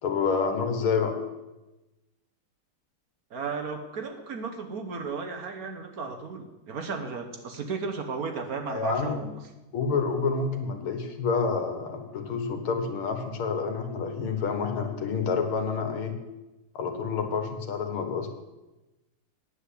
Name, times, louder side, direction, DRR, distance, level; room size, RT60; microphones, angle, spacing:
voice 1, 0.0-1.2 8.7-9.2 9.7-16.2 16.8-18.3, left 5 dB, 80° left, 6 dB, 2.3 m, -28 dB
voice 2, 3.3-9.4, right 4 dB, 50° right, 5 dB, 1.3 m, -35 dB
9.3 x 8.0 x 8.4 m, 1.0 s
omnidirectional pair, 2.3 m